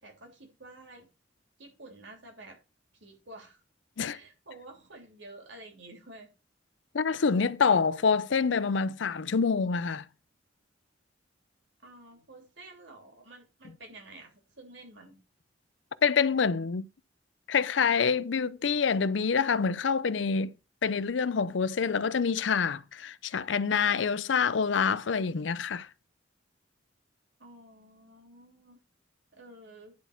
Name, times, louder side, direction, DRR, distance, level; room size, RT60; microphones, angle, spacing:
voice 1, 0.0-1.1 1.6-2.6 2.9-3.6 4.1-6.3 11.8-15.2 27.4-28.8 29.3-29.9, right 2 dB, 70° right, 3.3 m, -50 dB
voice 2, 6.9-10.0 16.0-16.9 17.5-20.5 20.8-25.9, left 5 dB, 75° left, 0.5 m, -26 dB
10.5 x 4.3 x 5.9 m
head